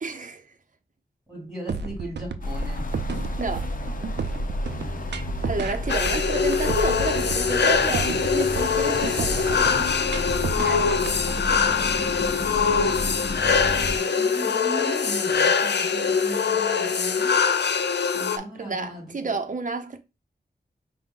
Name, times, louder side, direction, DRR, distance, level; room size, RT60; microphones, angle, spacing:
voice 1, 0.0-0.5 3.4-3.7 5.4-9.7 18.4-20.0, right 4 dB, 50° right, 0.7 m, -31 dB
voice 2, 1.3-3.0 4.8-5.5 6.1-6.2 10.5-12.1 13.7-17.4 18.1-19.3, right 1 dB, 5° right, 2.7 m, -39 dB
sound 1, 1.7-11.6, right 4 dB, 85° right, 0.4 m, -32 dB
sound 2, 2.4-14.0, left 1 dB, 50° left, 0.6 m, -31 dB
sound 3, 5.9-18.4, left 6 dB, 90° left, 0.4 m, -23 dB
5.3 x 2.2 x 3.7 m
wide cardioid pair, 70°, 17 cm